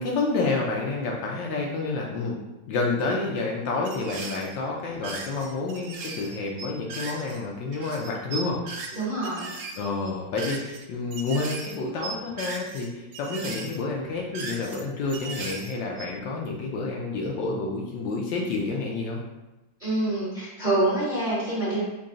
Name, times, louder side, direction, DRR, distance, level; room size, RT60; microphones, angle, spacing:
voice 1, 0.0-2.4 2.7-8.6 9.8-19.2, left 3 dB, 75° left, -1 dB, 1.2 m, -29 dB
sound 1, 3.8-4.5 4.9-7.4 7.7-10.8 11.1-11.8 12.0-12.9 13.1-14.8 15.1-16.2, right 4 dB, 75° right, 1.3 m, -38 dB
voice 2, 8.9-9.5 19.8-21.8, right 2 dB, 30° right, -9 dB, 1.0 m, -26 dB
3.9 x 2.3 x 3.6 m, 1.0 s
omnidirectional pair, 2.2 m